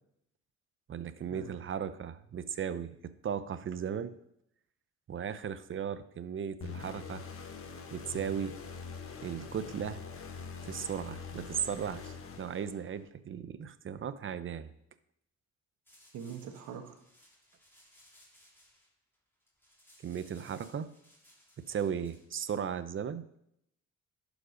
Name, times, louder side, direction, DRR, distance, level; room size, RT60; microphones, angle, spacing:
voice 1, 0.9-4.2 5.1-7.2 7.9-8.6 9.2-10.0 10.6-14.7 20.0-20.9 21.7-23.3, right 8 dB, 40° right, 13 dB, 0.7 m, -36 dB
sound 1, 6.6-13.1, left 5 dB, 45° left, 1.3 m, -44 dB
sound 2, 15.9-22.5, equal, 5° left, 3.2 m, -62 dB
voice 2, 16.1-17.0, right 7 dB, 80° right, 6 dB, 1.4 m, -43 dB
11.5 x 5.1 x 5.1 m, 0.75 s
cardioid pair, 90°, 30 cm